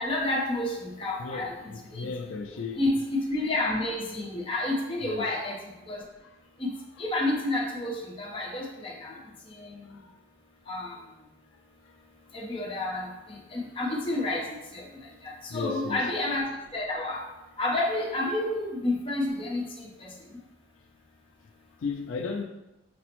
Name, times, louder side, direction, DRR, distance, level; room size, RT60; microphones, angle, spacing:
voice 1, 0.0-2.1 2.8-5.6 5.9-6.0 6.6-6.7 7.0-9.1 9.5-9.9 10.7-10.9 12.3-14.9 15.2-16.5 16.7-17.2 17.6-20.1, left 2 dB, 30° left, 0.7 m, -30 dB
voice 2, 1.2-2.9 5.0-5.3 8.6-8.7 9.1-9.2 9.9-10.1 15.5-16.1 21.8-22.4, left 4 dB, 80° left, 0.4 m, -35 dB
5.9 x 2.0 x 2.9 m
head